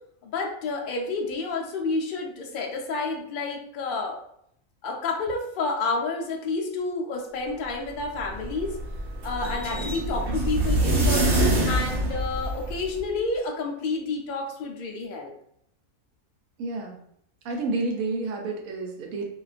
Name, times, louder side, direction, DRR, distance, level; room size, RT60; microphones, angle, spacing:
voice 1, 0.2-4.2 4.8-8.7 9.2-15.3, left 3 dB, 85° left, 0 dB, 0.4 m, -30 dB
sound 1, 8.0-13.0, right 1 dB, 60° right, 1.0 m, -25 dB
voice 2, 16.6-17.0 17.4-19.2, right 3 dB, 85° right, 2 dB, 1.0 m, -30 dB
2.4 x 2.2 x 2.4 m, 0.70 s
omnidirectional pair, 1.4 m